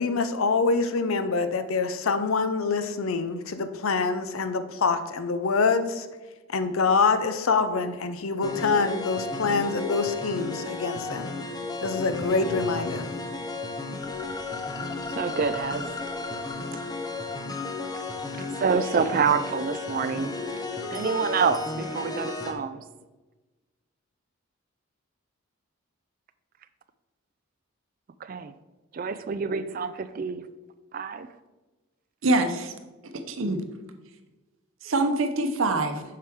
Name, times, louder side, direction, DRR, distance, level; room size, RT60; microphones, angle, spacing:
voice 1, 0.0-6.1 6.5-11.3 11.8-13.0, left 4 dB, 70° left, 10 dB, 0.6 m, -25 dB
sound 1, 8.4-22.5, left 3 dB, 20° left, 0.6 m, -33 dB
voice 2, 15.1-15.9 18.4-20.3 20.9-22.8 28.2-28.5 28.9-30.4 30.9-31.3, right 5 dB, 40° right, 13 dB, 0.3 m, -27 dB
voice 3, 32.2-32.7 33.3-33.6 34.8-36.0, right 2 dB, 65° right, 7 dB, 0.8 m, -24 dB
7.6 x 5.7 x 3.6 m, 1.2 s
head